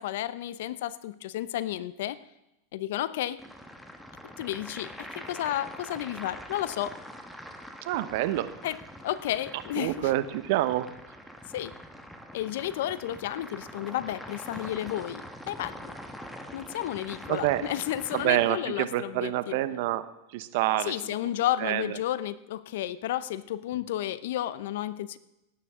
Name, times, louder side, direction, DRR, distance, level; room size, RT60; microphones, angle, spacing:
voice 1, 0.0-2.2 2.7-3.4 4.4-7.0 8.6-8.8 9.0-10.1 11.5-11.7 12.3-15.2 15.5-15.9 16.5-19.6 20.9-25.2, left 13 dB, 70° left, 16 dB, 0.6 m, -32 dB
sound 1, 3.4-18.5, equal, ahead, 1.4 m, -44 dB
voice 2, 7.9-8.5 9.8-10.9 17.3-17.6 18.1-20.0 20.3-20.9 21.6-21.8, right 15 dB, 65° right, 12 dB, 0.9 m, -27 dB
18.0 x 9.4 x 3.7 m, 0.89 s
hypercardioid pair, 115°, 0 cm